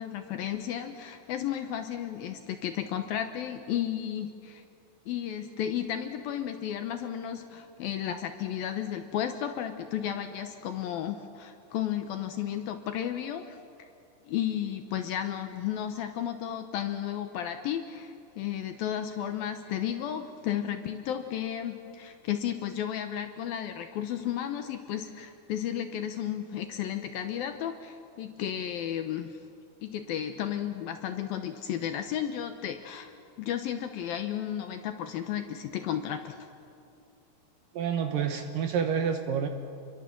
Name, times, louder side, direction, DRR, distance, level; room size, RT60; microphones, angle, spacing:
voice 1, 0.0-4.6 5.1-13.6 14.3-29.4 29.8-33.1 33.4-36.4, left 10 dB, 75° left, 7 dB, 2.4 m, -33 dB
voice 2, 37.8-39.5, right 7 dB, 70° right, 6 dB, 2.3 m, -28 dB
29.0 x 23.0 x 7.5 m, 2.4 s
omnidirectional pair, 5.0 m